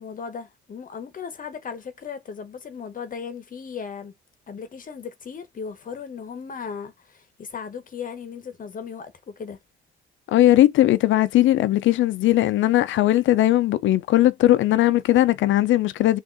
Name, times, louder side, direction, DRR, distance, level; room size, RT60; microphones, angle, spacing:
voice 1, 0.0-4.1 4.5-9.6, left 6 dB, 45° left, 0.9 m, -36 dB
voice 2, 10.3-16.2, left 14 dB, 75° left, 0.5 m, -18 dB
3.5 x 2.5 x 3.8 m
cardioid pair, 90°, 20 cm